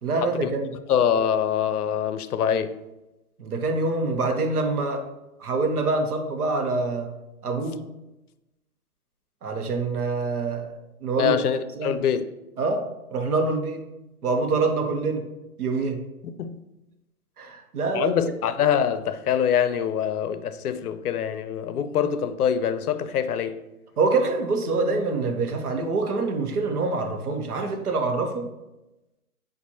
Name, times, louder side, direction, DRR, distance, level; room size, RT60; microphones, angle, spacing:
voice 1, 0.0-0.7 3.4-5.0 5.4-7.1 7.4-7.8 9.4-11.4 11.8-12.0 12.6-12.8 13.1-13.8 14.2-15.2 15.6-16.0 17.4-18.1 24.0-28.5, right 3 dB, 85° right, 1.0 m, -25 dB
voice 2, 0.9-2.7 11.2-12.3 16.2-16.6 17.9-23.6, left 8 dB, 90° left, 0.5 m, -24 dB
7.2 x 2.5 x 2.8 m
hypercardioid pair, 165°, 44 cm